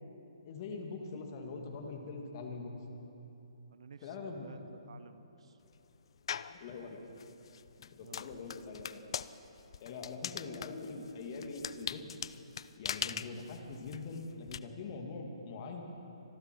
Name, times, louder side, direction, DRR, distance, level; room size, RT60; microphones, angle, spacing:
voice 1, 0.4-2.7 4.0-4.5 6.5-7.0 7.8-9.2 9.8-12.0 12.8-15.8, left 4 dB, 40° left, 3 dB, 1.9 m, -43 dB
voice 2, 3.7-5.6 8.0-8.3 10.1-10.5, right 5 dB, 65° right, 11 dB, 1.0 m, -54 dB
sound 1, 6.3-6.6 7.2-14.6, left 8 dB, 60° left, 0.4 m, -41 dB
25.0 x 11.5 x 4.5 m, 2.9 s
hypercardioid pair, 145°, 3 cm